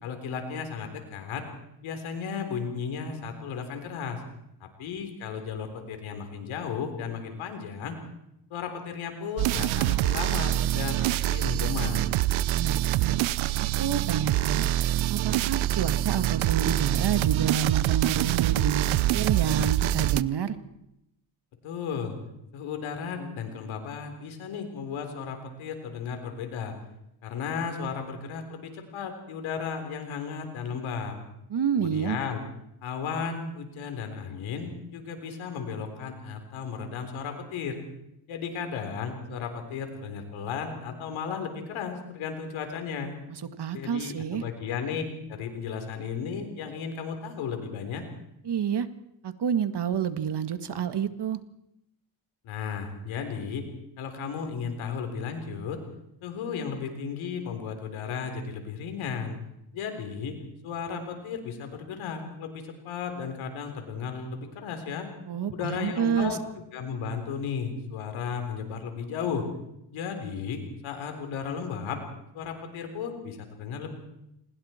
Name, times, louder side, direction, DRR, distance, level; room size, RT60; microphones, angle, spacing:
voice 1, 0.0-1.4 1.8-4.2 4.6-8.0 8.5-12.0 21.6-22.2 22.5-26.7 27.2-31.2 31.8-32.4 32.8-37.8 38.3-43.1 43.7-45.0 45.3-48.0 52.4-53.6 54.0-55.8 56.2-59.4 59.7-60.4 60.6-65.1 65.5-66.4 66.7-69.4 69.9-72.0 72.3-73.9, left 6 dB, 90° left, 6 dB, 3.8 m, -34 dB
sound 1, 9.4-20.2, right 15 dB, 80° right, 0.7 m, -25 dB
voice 2, 12.5-13.2 13.6-14.7 15.1-18.9 19.1-20.6 31.5-32.2 43.6-44.4 48.5-48.9 49.2-51.4 65.3-66.4, right 7 dB, 60° right, 10 dB, 2.0 m, -29 dB
28.0 x 21.0 x 4.5 m, 0.81 s
cardioid pair, 65°, 46 cm